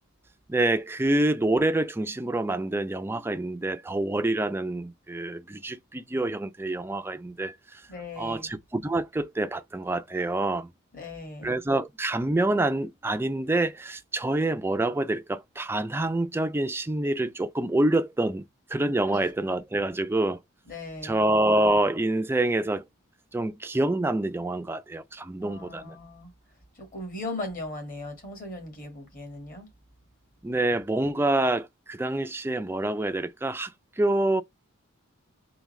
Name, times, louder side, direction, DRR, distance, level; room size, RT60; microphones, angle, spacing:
voice 1, 0.5-7.8 8.2-10.7 11.4-18.4 18.7-20.4 21.0-22.8 23.3-26.0 30.4-33.7 34.0-34.4, right 2 dB, 10° right, 0.3 m, -26 dB
voice 2, 7.9-8.5 10.9-11.6 19.1-19.2 20.7-21.2 25.4-26.3 26.7-29.7, left 2 dB, 40° left, 1.7 m, -38 dB
3.6 x 3.4 x 3.1 m
head